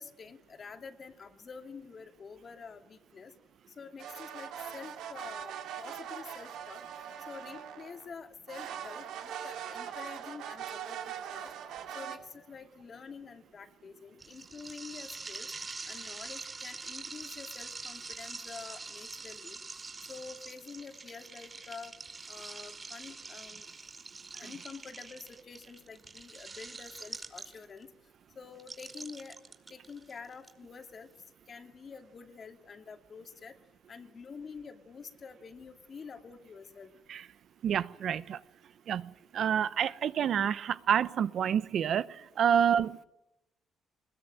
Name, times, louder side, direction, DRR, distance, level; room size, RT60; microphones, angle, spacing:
voice 1, 0.0-3.3 3.8-6.8 7.3-11.5 11.9-15.5 15.9-19.6 20.0-21.9 22.3-23.7 24.4-27.9 28.4-29.4 29.7-31.1 31.5-33.6 33.9-36.9 42.6-42.7, left 5 dB, 45° left, 2.5 m, -47 dB
sound 1, 4.0-8.1 8.5-12.2, right 9 dB, 90° right, 2.8 m, -41 dB
sound 2, 14.2-27.8 28.6-30.5, right 4 dB, 30° right, 4.9 m, -45 dB
voice 2, 37.6-38.4 38.9-43.0, right 8 dB, 65° right, 0.8 m, -28 dB
21.0 x 20.5 x 9.1 m
cardioid pair, 90°, 0 cm